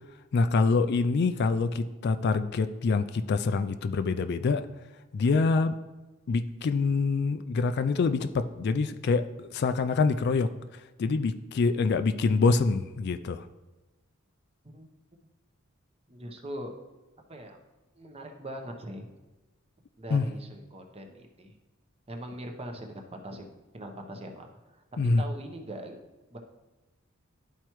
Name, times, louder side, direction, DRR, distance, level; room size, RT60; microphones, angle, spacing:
voice 1, 0.3-4.7 5.1-5.8 6.3-13.5 20.1-20.3 25.0-25.2, left 4 dB, 50° left, 10 dB, 0.3 m, -26 dB
voice 2, 16.1-16.7 17.3-17.6 17.9-19.1 20.0-21.6 22.1-23.5 23.7-24.5 24.7-24.8 25.2-26.0 26.3-26.4, right 1 dB, 30° right, 3 dB, 0.8 m, -41 dB
11.5 x 4.5 x 3.0 m, 1.1 s
head